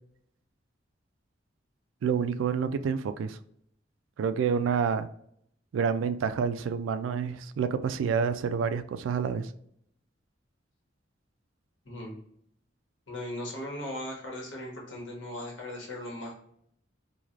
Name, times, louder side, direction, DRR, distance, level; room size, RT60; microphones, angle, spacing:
voice 1, 2.0-3.4 4.2-5.1 5.7-9.5, right 6 dB, 85° right, 0.3 m, -28 dB
voice 2, 13.1-16.3, left 1 dB, 70° left, 1.1 m, -38 dB
3.1 x 2.3 x 2.4 m
head